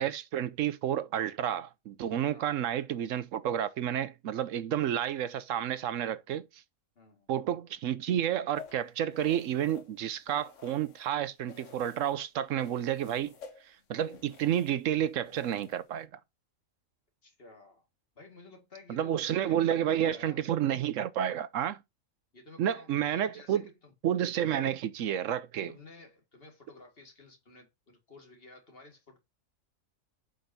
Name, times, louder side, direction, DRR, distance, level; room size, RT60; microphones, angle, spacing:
voice 1, 0.0-6.6 7.3-13.3 13.7-16.1 18.9-21.8 22.6-23.7 24.0-25.7, right 10 dB, 70° right, 1.0 m, -30 dB
voice 2, 7.0-7.3 17.2-17.9 18.2-20.4 22.3-23.9 25.7-29.2, left 3 dB, 45° left, 2.2 m, -53 dB
sound 1, 8.6-11.1 11.5-12.2 12.6-16.0, left 6 dB, 65° left, 1.3 m, -52 dB
7.9 x 5.3 x 2.7 m
omnidirectional pair, 1.4 m